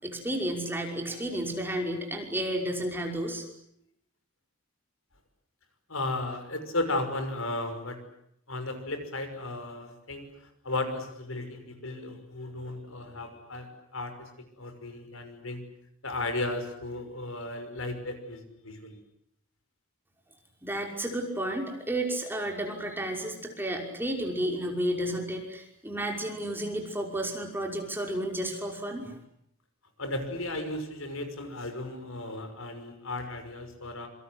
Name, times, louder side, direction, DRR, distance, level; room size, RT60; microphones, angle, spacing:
voice 1, 0.0-3.4 20.6-29.1, right 1 dB, 10° right, 2 dB, 5.6 m, -32 dB
voice 2, 5.9-8.0 8.5-14.3 14.6-15.6 16.0-19.0 30.0-34.1, left 2 dB, 80° left, 8 dB, 6.1 m, -35 dB
27.0 x 26.0 x 8.1 m, 0.73 s
head